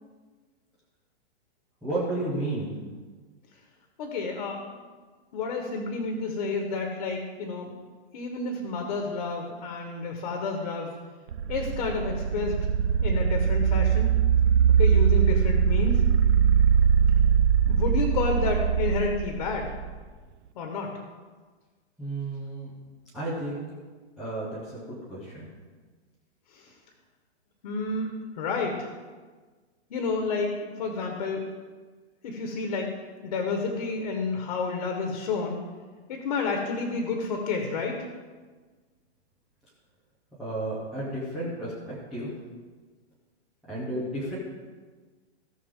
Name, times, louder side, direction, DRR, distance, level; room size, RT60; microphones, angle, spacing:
voice 1, 1.8-2.7 22.0-22.7 23.1-23.7 24.2-25.5 40.4-42.3 43.7-44.3, right 2 dB, ahead, -12 dB, 0.4 m, -32 dB
voice 2, 4.0-4.9 5.3-7.7 8.1-11.0 11.5-12.6 13.0-14.2 14.8-16.0 17.7-19.7 20.5-20.9 26.5-26.7 27.6-28.9 29.9-31.4 32.2-32.9 33.2-35.6 36.1-38.1, left 4 dB, 40° left, 3 dB, 1.4 m, -30 dB
sound 1, 11.3-20.1, right 7 dB, 75° right, 0.7 m, -22 dB
17.0 x 6.4 x 3.7 m, 1.4 s
hypercardioid pair, 175°, 34 cm